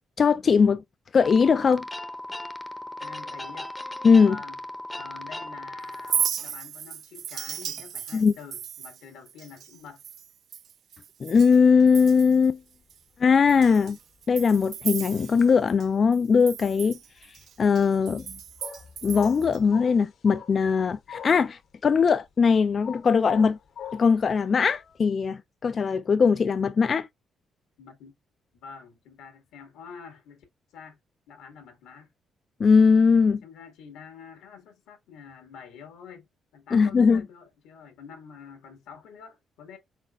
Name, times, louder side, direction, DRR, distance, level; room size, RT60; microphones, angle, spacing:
voice 1, 0.2-0.8 1.1-1.8 4.0-4.4 8.1-8.3 11.2-12.6 13.2-14.0 14.3-17.0 17.6-18.3 19.0-23.6 23.9-27.1 32.6-33.4 36.7-37.2, left 5 dB, 45° left, 0.3 m, -20 dB
sound 1, 1.2-6.3, left 1 dB, 10° left, 0.7 m, -37 dB
voice 2, 3.0-3.7 4.2-4.6 5.0-10.0 27.8-28.1 28.5-30.4 30.7-31.0 31.3-32.1 33.4-36.3 36.5-39.8, left 6 dB, 90° left, 1.4 m, -46 dB
Chink clink, 5.9-11.6 11.9-12.5 12.9-13.0 13.5-15.9 16.1-19.6, right 8 dB, 65° right, 0.3 m, -35 dB
sound 2, 12.3-13.2 13.5-15.0 15.3-16.9 17.2-21.5 22.0-25.0, left 7 dB, 60° left, 0.8 m, -43 dB
4.2 x 4.1 x 2.3 m
cardioid pair, 90°, 0 cm